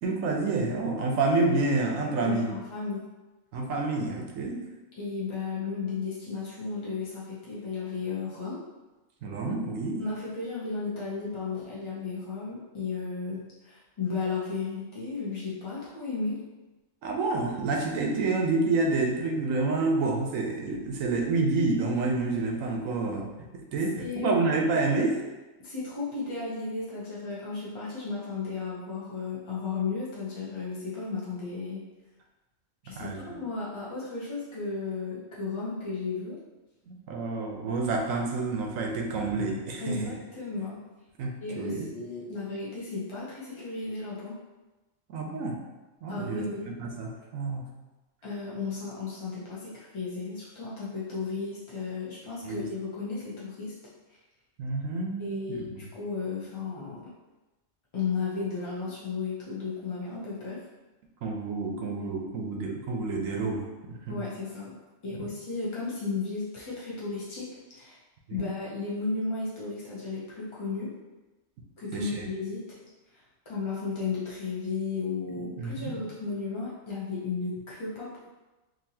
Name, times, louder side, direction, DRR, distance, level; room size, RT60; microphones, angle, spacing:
voice 1, 0.0-2.5 3.5-4.6 9.2-10.0 17.0-23.3 23.5-25.2 33.0-33.4 36.9-40.1 41.2-41.9 45.1-45.6 46.0-46.5 46.8-47.6 52.4-52.7 54.6-55.8 61.2-64.2 68.3-68.5 71.9-72.3 75.6-75.9, right 3 dB, 90° right, 1 dB, 1.0 m, -28 dB
voice 2, 2.2-3.1 5.0-8.6 10.0-16.4 24.0-24.4 25.6-31.9 32.8-36.4 37.6-37.8 39.8-40.9 41.4-44.4 46.1-46.7 48.2-53.7 55.2-57.1 57.9-60.6 64.1-64.7 65.0-68.0 68.3-71.0 71.8-72.6 73.5-78.3, left 4 dB, 45° left, -7 dB, 0.4 m, -34 dB
3.9 x 2.6 x 2.7 m, 1.1 s
omnidirectional pair, 1.4 m